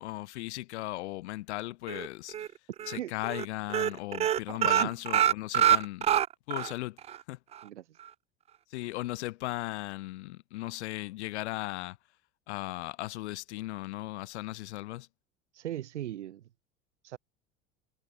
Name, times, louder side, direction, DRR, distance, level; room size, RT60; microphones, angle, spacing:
voice 1, 0.0-2.3 2.9-6.1 6.5-7.0 7.3-7.4 8.7-12.0 12.5-15.1, left 18 dB, 70° left, 4.0 m, -37 dB
sound 1, 1.9-2.5 2.8-3.0 3.2-3.4 3.7-6.7 7.1-7.2 7.5-7.6, right 10 dB, 20° right, 0.3 m, -25 dB
voice 2, 4.5-5.0 7.6-8.0 15.5-16.4 17.0-17.2, right 12 dB, 80° right, 2.7 m, -38 dB
hypercardioid pair, 75°, 35 cm